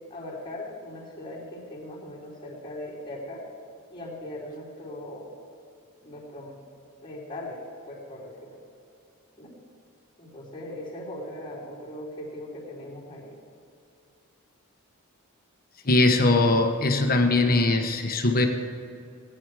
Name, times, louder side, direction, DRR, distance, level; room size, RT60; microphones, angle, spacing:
voice 1, 0.1-3.4 3.9-5.3 6.0-6.6 7.0-8.6 9.4-9.6 10.2-13.4, left 1 dB, 20° left, -7 dB, 3.5 m, -39 dB
voice 2, 15.8-18.5, left 2 dB, 40° left, 4 dB, 1.2 m, -21 dB
19.5 x 9.7 x 4.9 m, 2.6 s
head